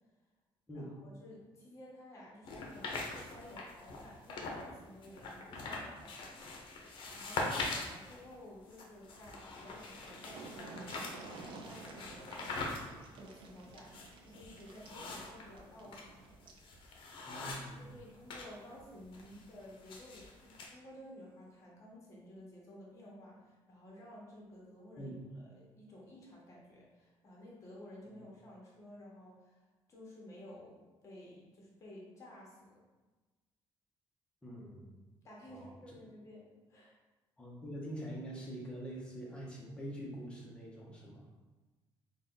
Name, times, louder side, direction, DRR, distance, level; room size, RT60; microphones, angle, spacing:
voice 1, 0.7-6.6 7.1-12.8 13.2-16.4 17.4-25.1 25.4-29.6 29.9-32.8 35.2-36.9, left 1 dB, 30° left, -4 dB, 1.1 m, -53 dB
sound 1, 2.4-4.7 5.0-18.5 18.8-20.7, left 3 dB, 60° left, 0.6 m, -43 dB
sound 2, 9.9-16.7 18.0-18.1 18.5-18.6, right 3 dB, 60° right, 0.5 m, -52 dB
voice 2, 17.2-17.9 25.0-25.1 28.1-28.2 34.4-34.9 35.5-35.9 37.4-41.2, right 1 dB, 10° left, -4 dB, 0.8 m, -45 dB
3.7 x 2.3 x 3.8 m, 1.2 s
cardioid pair, 150°, 10 cm